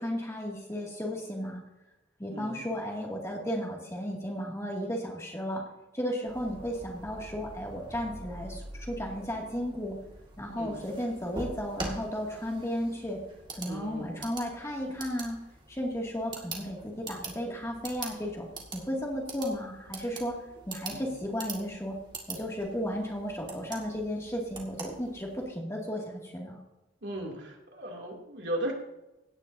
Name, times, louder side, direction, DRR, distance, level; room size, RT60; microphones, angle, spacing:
voice 1, 0.0-1.6 2.2-5.6 5.9-10.0 10.4-13.2 13.5-15.4 15.7-20.4 20.7-22.0 22.3-26.6, equal, 15° left, -2 dB, 2.3 m, -34 dB
voice 2, 2.3-2.7 10.5-10.8 13.7-14.1 20.9-21.0 27.0-28.7, right 1 dB, 65° right, -1 dB, 2.7 m, -36 dB
sound 1, 6.3-25.5, right 2 dB, 25° right, 2.0 m, -44 dB
17.0 x 10.5 x 2.7 m, 0.98 s
head